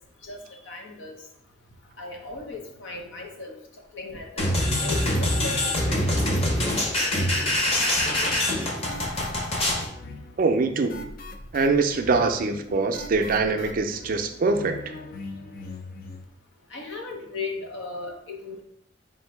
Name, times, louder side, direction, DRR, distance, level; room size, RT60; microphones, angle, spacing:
voice 1, 0.7-1.2 2.0-3.5 3.9-4.5 4.8-6.0 12.2-12.3 16.7-18.6, left 3 dB, 85° left, 1 dB, 0.8 m, -36 dB
sound 1, 4.4-9.9, left 1 dB, 35° left, 0.8 m, -24 dB
sound 2, 8.0-16.3, left 2 dB, 50° left, 0.4 m, -41 dB
voice 2, 10.4-11.1 11.5-14.8, right 3 dB, 50° right, 6 dB, 0.4 m, -23 dB
3.5 x 2.6 x 4.5 m, 0.73 s
head